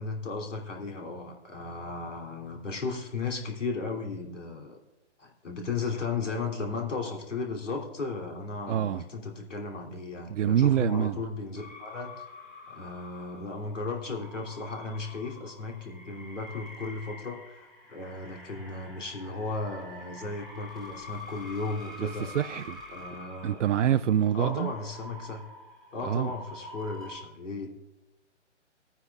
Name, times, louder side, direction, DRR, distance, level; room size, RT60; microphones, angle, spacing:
voice 1, 0.0-4.8 5.2-12.2 12.7-22.3 22.9-23.6 24.3-25.4 25.9-27.7, left 3 dB, 85° left, 0 dB, 3.0 m, -35 dB
voice 2, 8.7-9.0 10.3-11.2 22.0-22.8 23.4-24.7 26.0-26.3, right 10 dB, 85° right, 11 dB, 0.5 m, -26 dB
sound 1, 11.5-27.2, left 2 dB, ahead, 1.8 m, -47 dB
19.5 x 9.9 x 2.4 m, 1.0 s
hypercardioid pair, 150°, 36 cm